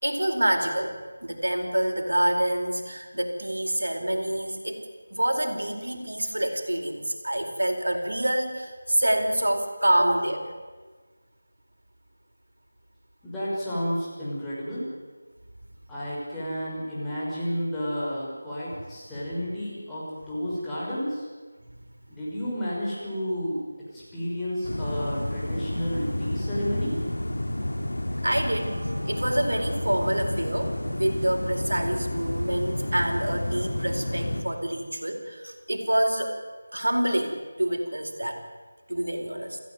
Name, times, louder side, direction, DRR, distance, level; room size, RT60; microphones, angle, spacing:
voice 1, 0.0-0.9 1.2-4.8 5.1-10.4 28.2-36.4 36.7-38.4 38.9-39.6, right 1 dB, 85° right, 5 dB, 4.5 m, -27 dB
voice 2, 13.2-14.9 15.9-21.3 22.1-23.6 23.9-27.0, equal, 5° left, -9 dB, 6.2 m, -31 dB
sound 1, 24.6-34.4, left 1 dB, 80° left, 3.8 m, -30 dB
28.5 x 15.5 x 9.4 m, 1.4 s
figure-of-eight pair, 170°, 0 cm